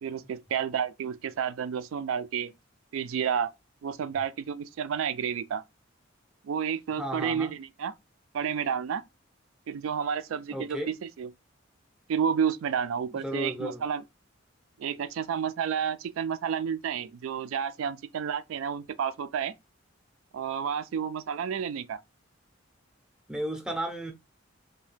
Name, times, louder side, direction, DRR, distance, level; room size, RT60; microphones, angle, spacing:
voice 1, 0.0-2.5 2.9-3.5 3.8-5.6 6.4-7.9 8.3-9.0 9.7-11.3 12.1-14.0 14.8-19.5 20.3-22.0, right 7 dB, 80° right, 0.3 m, -30 dB
voice 2, 7.0-7.5 10.5-10.9 13.2-13.8 23.3-24.1, right 1 dB, 5° right, 0.5 m, -33 dB
2.7 x 2.2 x 3.2 m
head